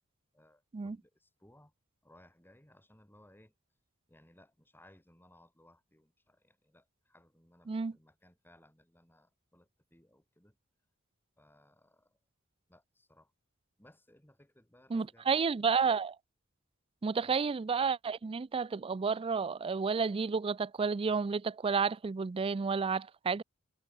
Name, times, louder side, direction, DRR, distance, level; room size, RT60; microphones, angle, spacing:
voice 1, 0.3-1.7 2.0-3.5 4.1-10.6 11.4-12.2 12.7-13.3 13.8-15.4 17.2-17.3, left 1 dB, 10° left, 5.4 m, -63 dB
voice 2, 14.9-16.2 17.0-23.4, right 5 dB, 25° right, 0.4 m, -31 dB
head